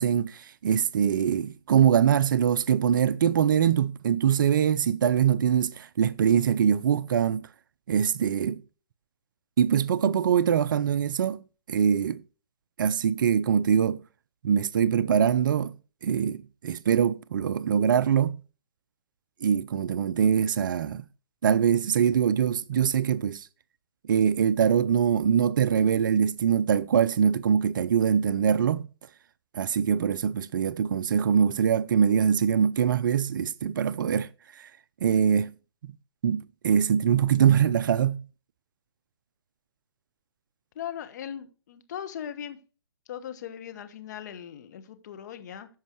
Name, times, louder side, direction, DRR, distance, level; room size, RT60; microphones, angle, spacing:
voice 1, 0.0-7.5 7.9-8.6 9.6-11.4 11.7-12.2 12.8-14.0 14.4-15.7 16.0-18.4 19.4-21.0 21.4-23.5 24.1-28.9 29.5-34.3 35.0-35.5 36.2-38.2, right 8 dB, 50° right, 0.5 m, -23 dB
voice 2, 40.7-42.6 43.1-45.7, left 9 dB, 45° left, 1.3 m, -39 dB
13.5 x 5.4 x 4.6 m
hypercardioid pair, 145°, 13 cm